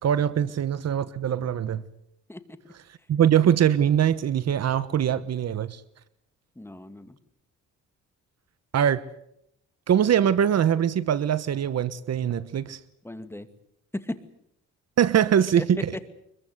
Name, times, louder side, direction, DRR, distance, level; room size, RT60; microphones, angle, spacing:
voice 1, 0.0-1.8 3.1-5.8 8.7-9.0 9.9-12.8 15.0-15.9, right 9 dB, 55° right, 1.2 m, -22 dB
voice 2, 6.6-7.2 13.0-13.5 13.9-14.2 15.6-15.7 15.9-16.1, left 1 dB, 10° left, 2.2 m, -36 dB
24.5 x 22.0 x 8.0 m
cardioid pair, 90°, 30 cm